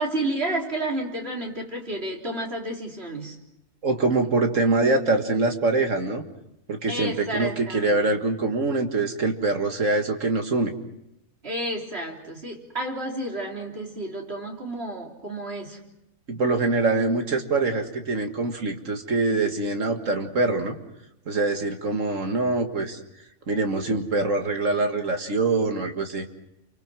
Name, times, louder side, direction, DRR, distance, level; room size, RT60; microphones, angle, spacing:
voice 1, 0.0-3.4 6.9-8.0 11.4-15.8, right 1 dB, 40° right, 0 dB, 3.7 m, -31 dB
voice 2, 3.8-6.2 6.7-10.7 16.3-20.8 21.3-23.0 23.5-26.3, right 3 dB, 55° right, 5 dB, 2.1 m, -24 dB
29.5 x 24.0 x 6.2 m, 0.85 s
omnidirectional pair, 1.6 m